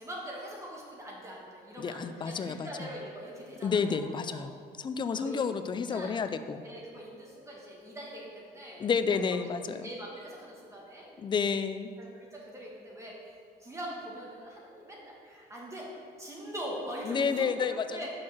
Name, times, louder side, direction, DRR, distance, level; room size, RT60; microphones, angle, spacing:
voice 1, 0.0-4.5 5.1-5.5 5.9-6.3 6.6-9.2 9.6-11.1 12.0-13.3 13.6-15.9 16.2-18.1, equal, 15° right, -3 dB, 1.6 m, -42 dB
voice 2, 1.8-2.9 3.6-6.6 8.8-9.9 11.2-11.9 17.0-18.0, left 5 dB, 30° left, 10 dB, 0.4 m, -30 dB
5.8 x 5.0 x 6.1 m, 2.2 s
cardioid pair, 110°, 17 cm